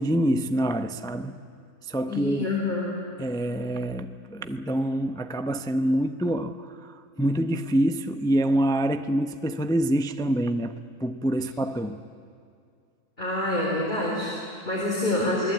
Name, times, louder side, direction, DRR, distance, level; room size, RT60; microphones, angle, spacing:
voice 1, 0.0-1.4 1.8-2.5 3.2-10.7 11.0-12.0, right 1 dB, 5° left, 8 dB, 0.3 m, -26 dB
voice 2, 2.1-2.9 13.2-15.5, left 2 dB, 30° left, -4 dB, 4.7 m, -27 dB
28.5 x 19.5 x 8.6 m, 2.3 s
omnidirectional pair, 1.6 m